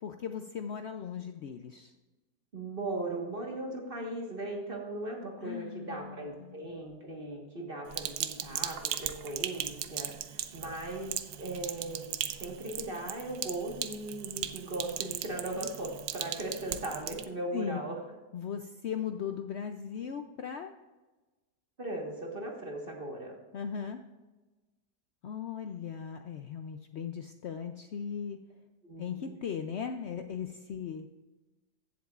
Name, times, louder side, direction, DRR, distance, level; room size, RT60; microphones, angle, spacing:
voice 1, 0.0-1.9 5.4-6.7 17.5-17.8 18.3-20.7 23.5-24.0 25.2-28.4 29.0-31.1, left 7 dB, 75° left, 7 dB, 0.6 m, -38 dB
voice 2, 2.5-18.0 21.8-23.4 28.8-29.3, right 2 dB, 35° right, 0 dB, 1.5 m, -38 dB
Sink (filling or washing), 7.9-17.2, right 11 dB, 75° right, 1.1 m, -38 dB
15.5 x 7.6 x 2.4 m, 1.2 s
omnidirectional pair, 1.7 m